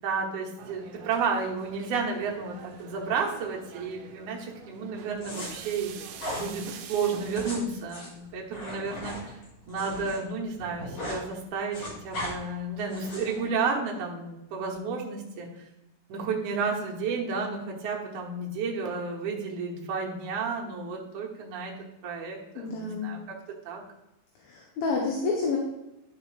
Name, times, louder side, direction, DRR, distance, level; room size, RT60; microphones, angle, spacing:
voice 1, 0.0-5.9 6.3-9.4 9.7-15.5 16.1-21.7 22.0-23.4 23.6-23.8, right 5 dB, 65° right, -1 dB, 2.4 m, -32 dB
sound 1, 0.6-7.6, right 7 dB, 80° right, 2.4 m, -45 dB
sound 2, 5.2-5.5 6.2-6.5 7.2-10.2 10.5-11.2 11.5-12.3 12.9-13.4, left 1 dB, 50° left, 4.5 m, -37 dB
voice 2, 22.6-23.1 24.4-25.6, left 4 dB, 75° left, -1 dB, 2.8 m, -29 dB
12.0 x 5.0 x 3.3 m, 0.93 s
omnidirectional pair, 4.5 m